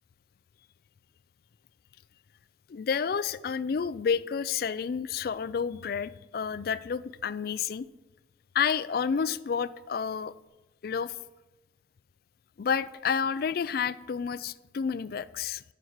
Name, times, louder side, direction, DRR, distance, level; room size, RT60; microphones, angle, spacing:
voice 1, 2.7-7.9 8.5-10.3 10.8-11.1 12.6-15.6, left 6 dB, 50° left, 17 dB, 0.3 m, -30 dB
9.9 x 5.8 x 6.4 m, 1.1 s
head